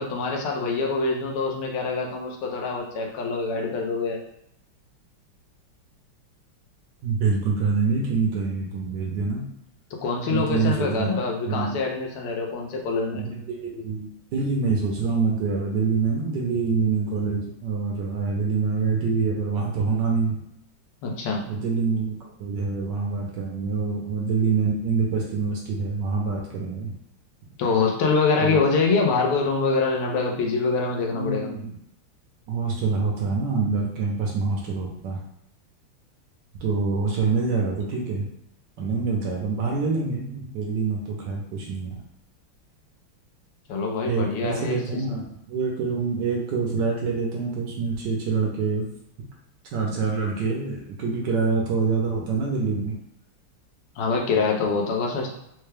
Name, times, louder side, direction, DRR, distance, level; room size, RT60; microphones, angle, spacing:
voice 1, 0.0-4.2 10.0-13.3 21.0-21.4 27.6-31.5 43.7-45.2 54.0-55.3, left 4 dB, 90° left, 0 dB, 1.7 m, -25 dB
voice 2, 7.0-9.4 10.3-11.8 13.1-20.4 21.5-22.1 22.4-26.9 28.4-28.6 31.1-31.8 32.5-35.2 36.6-38.3 38.8-41.9 44.0-48.8 49.7-52.9, right 4 dB, 70° right, -2 dB, 1.2 m, -26 dB
4.4 x 2.2 x 3.3 m, 0.77 s
omnidirectional pair, 2.4 m